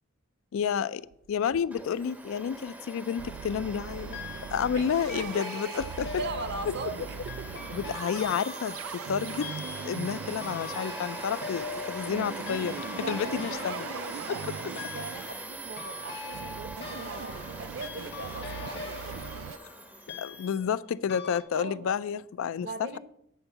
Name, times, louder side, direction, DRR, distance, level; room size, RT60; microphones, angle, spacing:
voice 1, 0.5-1.0 1.3-4.2 4.5-6.1 6.7-6.8 7.7-9.5 9.8-12.8 13.1-13.9 20.2-22.7, left 7 dB, 70° left, 0.3 m, -30 dB
sound 1, 1.1-2.0 2.3-2.4 2.7-2.8 3.2-19.6, right 7 dB, 75° right, 0.3 m, -41 dB
Domestic sounds home sounds, 1.7-20.6, right 2 dB, 10° right, 0.6 m, -42 dB
sound 2, 2.8-3.4 4.1-4.8 5.1-20.8 21.1-21.4, left 5 dB, 50° left, 0.8 m, -43 dB
voice 2, 5.1-7.8 12.9-19.3 21.5-21.9 22.6-23.0, right 3 dB, 50° right, 0.7 m, -40 dB
8.5 x 4.4 x 6.8 m
head